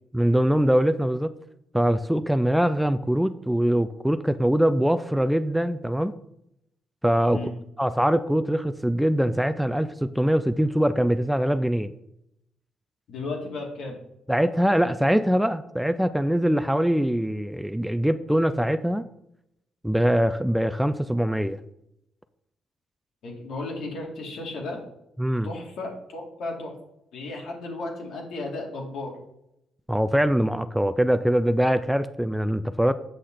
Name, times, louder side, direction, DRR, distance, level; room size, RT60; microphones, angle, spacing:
voice 1, 0.1-1.3 1.7-6.1 7.0-7.5 7.8-11.9 14.3-19.1 19.8-21.6 25.2-25.5 29.9-32.9, equal, 5° right, 12 dB, 0.4 m, -23 dB
voice 2, 13.1-14.0 23.2-24.8 25.4-26.8 27.1-29.2, left 2 dB, 75° left, -1 dB, 2.5 m, -34 dB
7.9 x 6.5 x 3.8 m, 0.80 s
cardioid pair, 90°, 0 cm